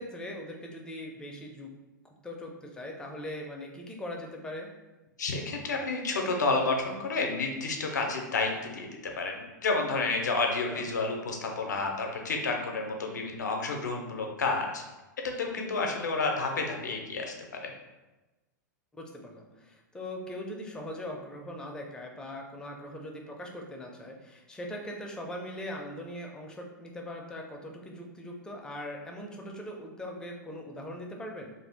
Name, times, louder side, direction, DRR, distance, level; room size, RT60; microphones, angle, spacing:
voice 1, 0.0-1.7 2.2-4.7 10.7-10.8 18.9-31.5, left 1 dB, 5° left, 0 dB, 0.4 m, -40 dB
voice 2, 5.2-9.3 9.6-14.8 15.2-17.3 17.6-17.7, left 3 dB, 65° left, 2 dB, 0.5 m, -30 dB
2.5 x 2.4 x 3.4 m, 1.1 s
figure-of-eight pair, 100°, 10 cm